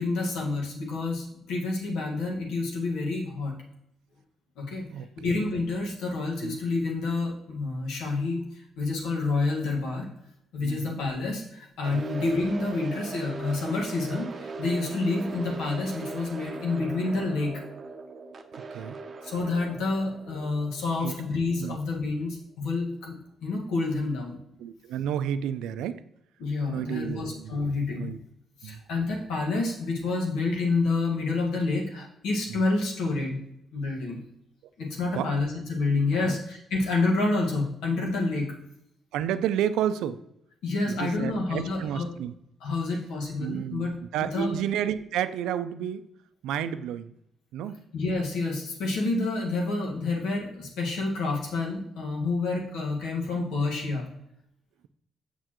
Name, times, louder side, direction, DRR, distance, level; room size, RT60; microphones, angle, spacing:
voice 1, 0.0-3.5 4.6-4.9 5.2-8.4 8.8-10.1 10.5-17.5 19.2-23.2 23.4-24.4 26.4-28.1 28.6-33.4 33.7-34.2 34.8-38.5 40.6-42.1 42.6-43.9 44.3-44.5 47.9-54.1, left 3 dB, 90° left, -1 dB, 1.6 m, -28 dB
voice 2, 4.8-5.5 6.4-6.6 10.6-11.0 11.9-12.1 18.5-19.0 21.0-21.1 21.6-21.8 24.6-26.0 26.7-27.6 27.9-28.2 28.6-28.8 32.5-32.6 35.1-35.3 36.1-36.4 39.1-40.2 40.8-42.3 43.4-46.1 46.4-47.1 47.5-47.8, right 9 dB, 90° right, 12 dB, 0.4 m, -31 dB
sound 1, 11.8-21.9, right 4 dB, 45° right, 0.7 m, -40 dB
6.7 x 6.6 x 3.0 m, 0.77 s
cardioid pair, 90°, 0 cm